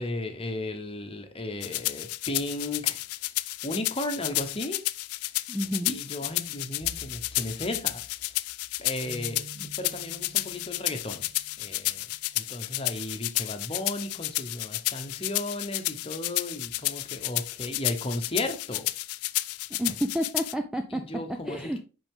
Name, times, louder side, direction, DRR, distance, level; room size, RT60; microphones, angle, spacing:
voice 1, 0.0-3.0 3.6-4.8 5.9-8.5 8.8-9.4 9.8-11.3 11.6-12.0 12.3-18.9 20.9-21.8, left 1 dB, 25° left, 0.9 m, -35 dB
sound 1, 1.6-20.5, left 18 dB, 85° left, 0.4 m, -31 dB
voice 2, 5.5-6.0 9.6-9.7 19.8-21.0 21.5-21.8, equal, 5° right, 0.3 m, -30 dB
sound 2, 9.1-12.6, right 3 dB, 70° right, 0.8 m, -50 dB
5.9 x 5.3 x 3.6 m
head